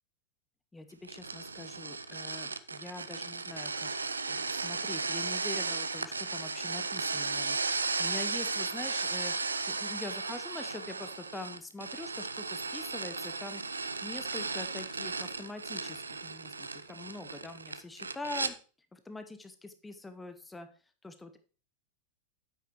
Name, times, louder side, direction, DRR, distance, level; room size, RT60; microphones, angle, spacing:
voice 1, 0.7-3.9 4.3-18.6 18.9-20.7 21.0-21.4, left 2 dB, 10° left, 9 dB, 0.9 m, -44 dB
sound 1, 1.0-18.5, right 4 dB, 75° right, 0.5 m, -35 dB
9.2 x 8.5 x 3.1 m, 0.37 s
figure-of-eight pair, 90°, 0 cm